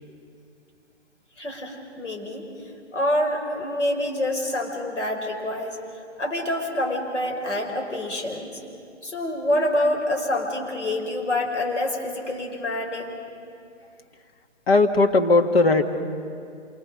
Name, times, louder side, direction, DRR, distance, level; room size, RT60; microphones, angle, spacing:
voice 1, 1.4-2.5 2.9-5.8 6.2-8.5 9.0-13.2, left 1 dB, 80° left, 0 dB, 5.7 m, -26 dB
voice 2, 14.7-15.8, left 3 dB, 55° left, 5 dB, 2.0 m, -18 dB
27.0 x 24.5 x 6.6 m, 2.4 s
figure-of-eight pair, 140°, 36 cm